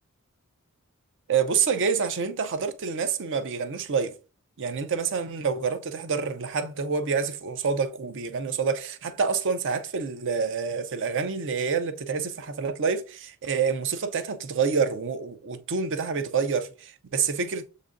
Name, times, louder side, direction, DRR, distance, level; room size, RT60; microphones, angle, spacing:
voice 1, 1.3-4.2 4.6-17.7, right 5 dB, 60° right, 0.6 m, -27 dB
7.3 x 2.7 x 2.5 m
head